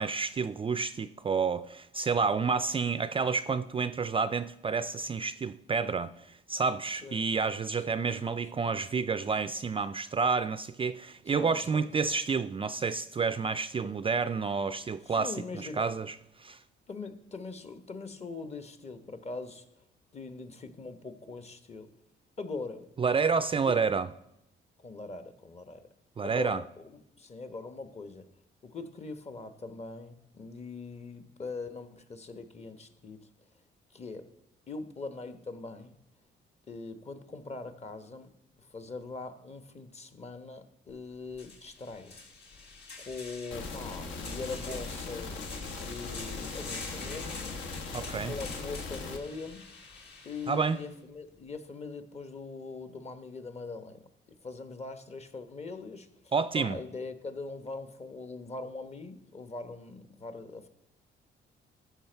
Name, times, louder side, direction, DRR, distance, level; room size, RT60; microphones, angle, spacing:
voice 1, 0.0-16.6 23.0-24.1 26.2-26.6 47.9-48.3 50.5-50.8 56.3-56.8, right 5 dB, 25° right, 0.4 m, -29 dB
voice 2, 7.9-8.4 11.4-12.1 13.8-14.0 15.0-15.9 16.9-19.6 20.1-21.9 22.4-22.9 23.7-23.8 24.8-25.9 26.2-28.3 28.6-33.3 33.9-34.3 34.7-36.0 36.7-38.3 38.6-42.2 43.0-45.4 45.8-47.5 48.2-49.7 50.2-54.1 54.4-60.7, left 3 dB, 35° left, 1.1 m, -42 dB
sound 1, 40.9-41.0 41.3-50.9, left 4 dB, 55° left, 2.3 m, -46 dB
sound 2, 43.5-49.2, left 3 dB, 75° left, 1.4 m, -39 dB
14.0 x 5.9 x 4.5 m
cardioid pair, 90°, 20 cm